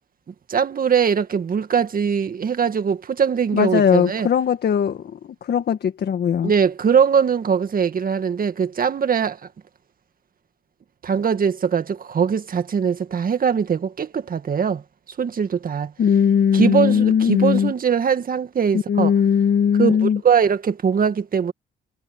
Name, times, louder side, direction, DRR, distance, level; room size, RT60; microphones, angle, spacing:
voice 1, 0.5-4.3 6.4-9.4 11.0-14.8 15.2-15.9 16.5-19.1 19.8-21.5, right 7 dB, 45° right, 2.0 m, -21 dB
voice 2, 3.5-6.5 16.0-17.7 18.9-20.2, left 7 dB, 55° left, 1.7 m, -19 dB
cardioid pair, 90°, 20 cm